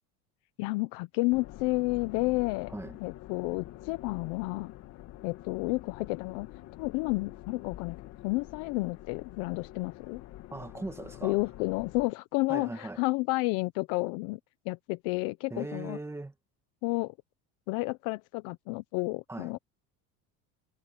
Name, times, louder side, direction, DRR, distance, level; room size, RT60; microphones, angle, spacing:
voice 1, 0.6-2.7 3.0-4.7 5.2-6.5 6.8-10.2 11.2-14.4 14.6-16.0 16.8-17.1 17.7-19.6, left 24 dB, 75° left, 0.9 m, -31 dB
sound 1, 1.3-12.1, left 15 dB, 55° left, 2.3 m, -47 dB
voice 2, 10.5-11.4 12.5-13.0 15.5-16.3 19.3-19.5, right 2 dB, 10° right, 2.0 m, -39 dB
cardioid pair, 135°, 33 cm